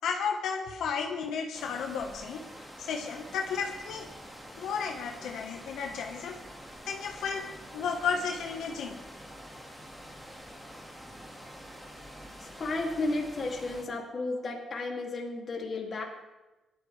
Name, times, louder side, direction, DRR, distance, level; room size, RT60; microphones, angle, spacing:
voice 1, 0.0-2.4 2.8-4.1 4.6-6.4 6.8-7.4 7.7-9.0, left 6 dB, 85° left, 1 dB, 1.3 m, -33 dB
sound 1, 1.5-13.8, equal, 5° right, 1.9 m, -47 dB
voice 2, 12.4-16.0, left 2 dB, 40° left, -1 dB, 2.6 m, -33 dB
19.5 x 11.5 x 3.4 m, 1.1 s
cardioid pair, 135°, 0 cm